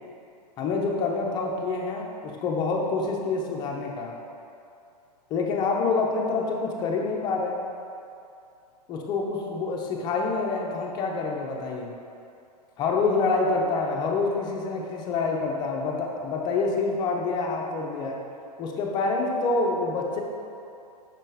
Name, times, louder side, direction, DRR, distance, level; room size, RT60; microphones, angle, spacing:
voice 1, 0.6-2.1 2.4-4.1 5.3-7.6 8.9-11.9 12.8-18.2 18.6-20.2, left 3 dB, 20° left, -1 dB, 0.4 m, -27 dB
5.3 x 3.6 x 2.7 m, 2.6 s
hypercardioid pair, 140°, 21 cm